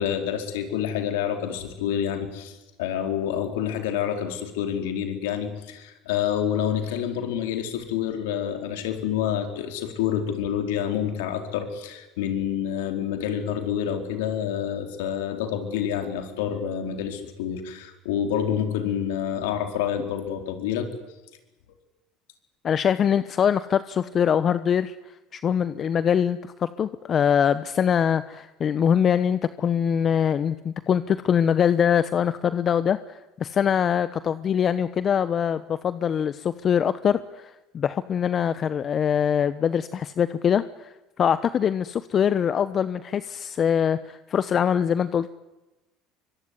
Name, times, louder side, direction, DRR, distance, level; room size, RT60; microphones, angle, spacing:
voice 1, 0.0-20.9, left 9 dB, 85° left, 6 dB, 4.5 m, -28 dB
voice 2, 22.6-24.9 25.3-45.3, left 8 dB, 40° left, 14 dB, 1.0 m, -23 dB
24.5 x 24.0 x 9.8 m, 1.0 s
supercardioid pair, 90°, 0 cm